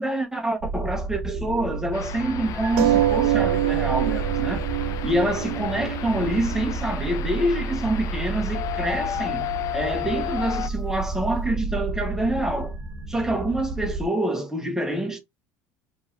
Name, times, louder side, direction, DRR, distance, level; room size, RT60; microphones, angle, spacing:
voice 1, 0.0-4.7 5.0-9.5 9.7-12.8 13.1-15.2, right 1 dB, 5° right, 1.0 m, -26 dB
sound 1, 0.6-14.1, right 3 dB, 40° right, 1.2 m, -31 dB
sound 2, 1.9-10.7, left 13 dB, 50° left, 0.3 m, -34 dB
sound 3, 2.8-7.8 8.5-8.6 8.9-9.0, right 13 dB, 90° right, 0.4 m, -25 dB
4.5 x 3.1 x 2.6 m
supercardioid pair, 115°, 7 cm